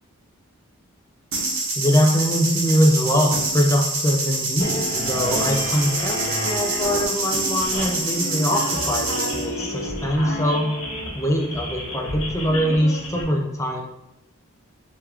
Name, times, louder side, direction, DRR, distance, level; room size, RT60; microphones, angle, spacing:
sound 1, 1.3-9.5, right 2 dB, 70° right, 1.1 m, -26 dB
voice 1, 1.8-10.7 11.1-13.8, equal, 15° left, 1 dB, 0.4 m, -22 dB
sound 2, 4.6-13.2, left 1 dB, 65° left, 1.0 m, -31 dB
3.4 x 3.0 x 3.5 m, 0.88 s
head